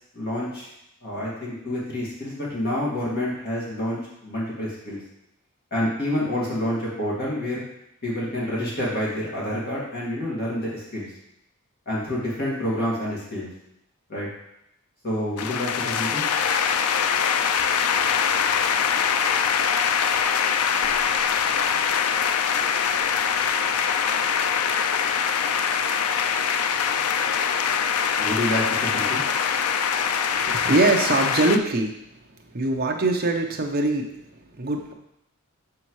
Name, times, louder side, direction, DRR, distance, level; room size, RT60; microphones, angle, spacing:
voice 1, 0.1-0.7 1.0-5.0 5.7-7.6 8.0-11.1 11.9-13.5 14.1-14.3 15.0-16.2 28.2-29.2, left 1 dB, 45° left, -7 dB, 2.0 m, -28 dB
sound 1, 15.4-31.6, left 7 dB, 80° left, 0.4 m, -23 dB
voice 2, 30.4-32.1 32.5-34.9, right 2 dB, 45° right, 3 dB, 0.7 m, -23 dB
6.9 x 5.8 x 3.1 m, 0.81 s
head